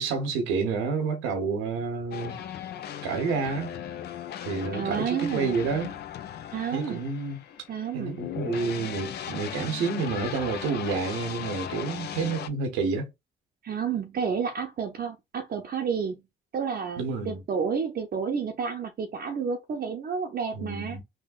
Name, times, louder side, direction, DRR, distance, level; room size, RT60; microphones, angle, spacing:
voice 1, 0.0-2.4 3.0-3.8 4.5-6.0 6.7-7.4 7.9-13.1 17.0-17.4 20.5-21.0, right 4 dB, 85° right, 0.7 m, -29 dB
sound 1, 2.1-12.5, left 9 dB, 55° left, 0.4 m, -37 dB
voice 2, 4.7-5.6 6.5-7.0 7.7-8.2 13.6-16.2 16.5-21.0, right 6 dB, 50° right, 0.6 m, -30 dB
3.5 x 2.1 x 2.3 m
supercardioid pair, 60°, 20 cm